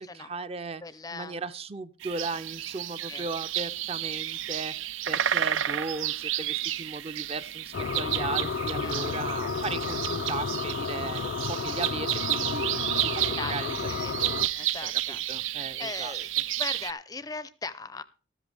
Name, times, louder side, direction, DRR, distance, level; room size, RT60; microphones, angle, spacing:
voice 1, 0.0-0.8 1.1-16.1, right 3 dB, 30° right, 12 dB, 0.5 m, -37 dB
voice 2, 0.8-1.4 3.1-3.2 8.8-8.9 13.4-13.5 13.9-14.1 14.5-15.2 15.8-16.3 16.6-18.0, left 4 dB, 20° left, 15 dB, 0.5 m, -38 dB
sound 1, 2.0-16.9, right 12 dB, 85° right, 0.5 m, -31 dB
sound 2, 7.7-14.5, left 5 dB, 65° left, 0.5 m, -32 dB
13.5 x 13.0 x 3.4 m, 0.37 s
head